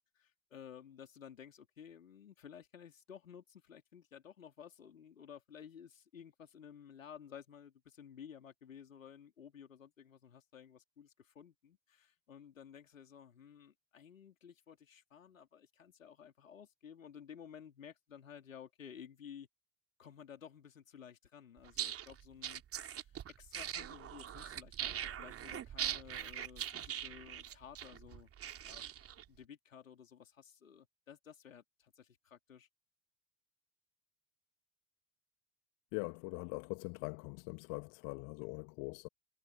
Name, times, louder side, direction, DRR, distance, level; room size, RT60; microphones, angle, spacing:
voice 1, 0.0-19.5 20.0-22.6 22.9-28.3 28.6-28.9 29.3-32.7, left 8 dB, 75° left, 3.7 m, -54 dB
sound 1, 21.6-29.2, right 10 dB, 35° right, 2.9 m, -42 dB
voice 2, 35.9-39.1, left 39 dB, 55° left, 1.6 m, -42 dB
figure-of-eight pair, 65°, 40 cm